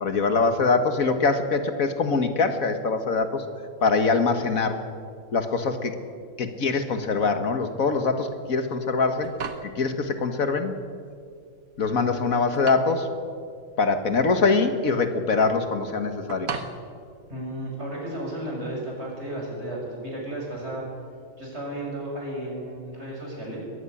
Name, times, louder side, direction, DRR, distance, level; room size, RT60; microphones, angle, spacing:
voice 1, 0.0-3.4 3.8-4.8 5.3-5.9 6.4-9.3 9.8-10.7 11.8-13.1 13.8-16.5, left 4 dB, 80° left, 8 dB, 2.0 m, -23 dB
sound 1, 9.0-18.0, right 5 dB, 85° right, 1.8 m, -40 dB
voice 2, 17.3-20.8 21.4-23.6, right 1 dB, 50° right, -3 dB, 7.1 m, -33 dB
21.5 x 14.5 x 10.0 m, 2.2 s
omnidirectional pair, 1.4 m